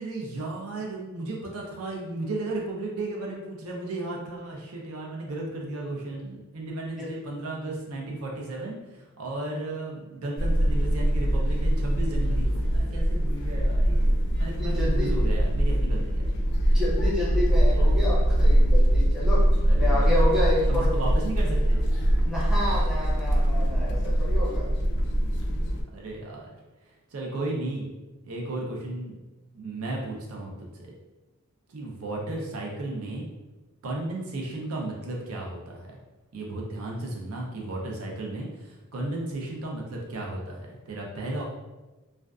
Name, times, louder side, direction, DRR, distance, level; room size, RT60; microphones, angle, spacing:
voice 1, 0.0-16.3 19.7-20.1 20.7-21.9 25.9-26.5 27.1-27.8 28.2-29.2 29.5-30.7 31.7-33.3 33.8-36.0 36.3-41.4, right 2 dB, 70° right, -1 dB, 0.5 m, -34 dB
sound 1, 10.4-25.8, equal, 50° left, 0.3 m, -22 dB
voice 2, 14.6-15.1 16.7-19.4 19.7-20.9 22.2-24.7, left 1 dB, 5° right, -7 dB, 0.6 m, -29 dB
2.5 x 2.2 x 2.3 m, 1.1 s
head